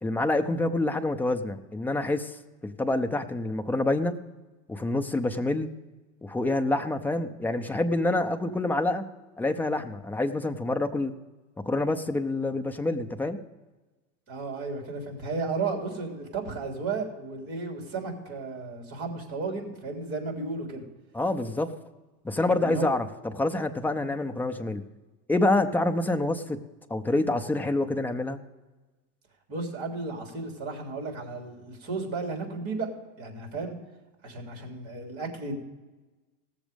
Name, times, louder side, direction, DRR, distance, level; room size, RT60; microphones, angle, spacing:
voice 1, 0.0-2.4 2.6-4.1 4.7-5.7 6.2-9.0 9.4-11.1 11.7-13.4 21.1-21.7 22.2-23.1 23.3-24.8 25.3-26.6 26.9-28.4, left 2 dB, 5° left, 5 dB, 0.3 m, -27 dB
voice 2, 14.3-20.8 22.5-22.9 29.5-32.9 33.2-33.8 34.2-35.6, right 3 dB, 35° right, 2 dB, 3.3 m, -34 dB
18.0 x 7.2 x 5.1 m, 1.2 s
supercardioid pair, 145°, 39 cm